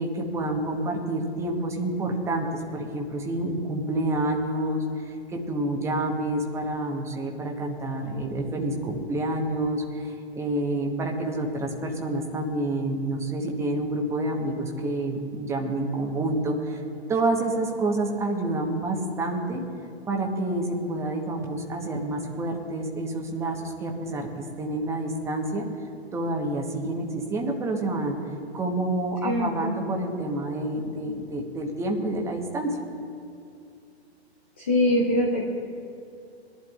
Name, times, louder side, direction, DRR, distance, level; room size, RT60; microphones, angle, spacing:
voice 1, 0.0-16.8 17.1-19.6 20.1-25.6 26.1-28.2 28.5-32.8, right 1 dB, 10° right, 1 dB, 1.1 m, -28 dB
voice 2, 29.2-29.7 34.6-35.5, left 1 dB, 10° left, -1 dB, 0.3 m, -23 dB
23.0 x 11.0 x 2.4 m, 2.5 s
figure-of-eight pair, 120°, 33 cm